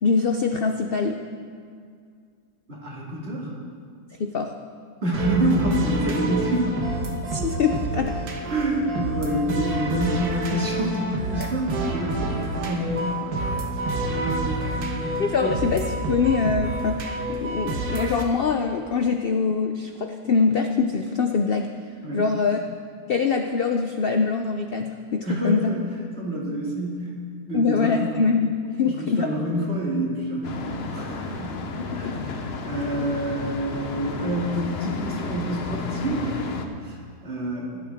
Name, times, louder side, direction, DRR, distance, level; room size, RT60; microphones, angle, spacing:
voice 1, 0.0-1.2 4.2-4.5 7.3-8.2 15.2-21.7 22.1-22.8 23.1-25.8 27.5-29.3 31.9-32.3, left 5 dB, 85° left, 5 dB, 0.5 m, -24 dB
voice 2, 2.7-3.5 5.0-6.8 8.4-13.6 14.0-15.6 22.0-22.3 25.3-25.9 26.2-28.1 28.8-31.6 31.9-32.4 32.6-36.5 36.8-37.8, equal, 35° right, -4 dB, 2.5 m, -27 dB
sound 1, 5.1-18.2, right 2 dB, 70° right, 1.7 m, -29 dB
sound 2, 30.4-36.7, left 3 dB, 50° left, 0.8 m, -32 dB
16.5 x 11.5 x 3.5 m, 2.2 s
omnidirectional pair, 1.8 m